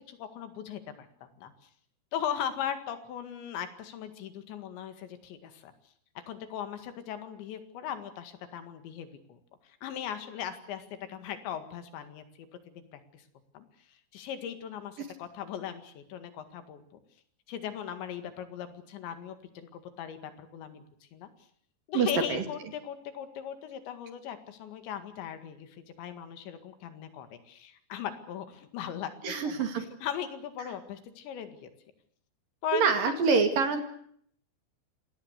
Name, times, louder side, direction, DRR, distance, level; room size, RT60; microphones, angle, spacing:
voice 1, 0.1-1.1 1.4-1.5 2.1-5.7 6.3-9.4 9.8-13.2 13.5-13.7 14.1-16.8 17.5-20.9 21.1-21.3 21.9-31.7 32.6-33.4, left 9 dB, 80° left, 9 dB, 4.3 m, -38 dB
voice 2, 21.9-22.4 29.2-29.9 32.7-33.8, right 5 dB, 55° right, 7 dB, 3.6 m, -26 dB
26.5 x 19.0 x 8.2 m, 0.64 s
omnidirectional pair, 5.1 m